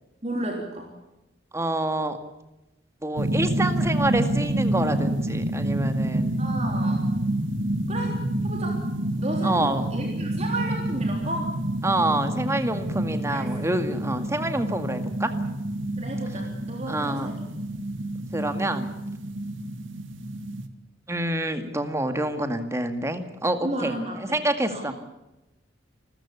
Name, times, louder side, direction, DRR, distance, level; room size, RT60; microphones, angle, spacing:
voice 1, 0.2-0.9 6.4-7.0 7.9-8.2 8.4-8.8 9.2-11.5 13.3-13.8 16.0-17.3 23.6-24.4 24.7-24.9, right 1 dB, 35° right, 0 dB, 3.6 m, -33 dB
voice 2, 1.5-2.2 3.0-6.4 9.4-9.9 11.8-15.3 16.9-17.3 18.3-18.9 21.1-24.9, right 1 dB, 15° right, 8 dB, 2.0 m, -27 dB
sound 1, 3.2-20.7, right 1 dB, 90° right, 2.0 m, -28 dB
27.5 x 14.5 x 8.4 m, 0.98 s
head